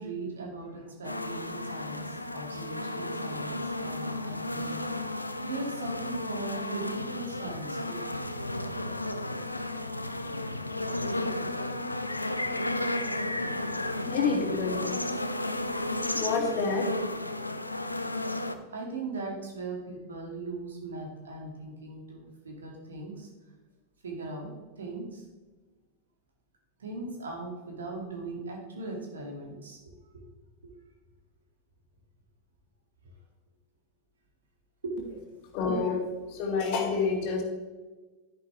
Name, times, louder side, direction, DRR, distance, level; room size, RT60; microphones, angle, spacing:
voice 1, 0.0-4.9 5.4-8.2 13.3-13.8 18.7-23.3 24.0-25.2 26.8-30.2 30.6-30.7 33.0-33.1 34.8-35.0, right 2 dB, 70° right, 0 dB, 2.4 m, -39 dB
sound 1, 1.0-18.6, left 1 dB, 85° left, 0.6 m, -33 dB
voice 2, 14.1-14.8 16.1-16.9 35.5-37.4, left 4 dB, 45° left, 2 dB, 2.2 m, -28 dB
11.5 x 10.0 x 3.4 m, 1.3 s
figure-of-eight pair, 90°, 0 cm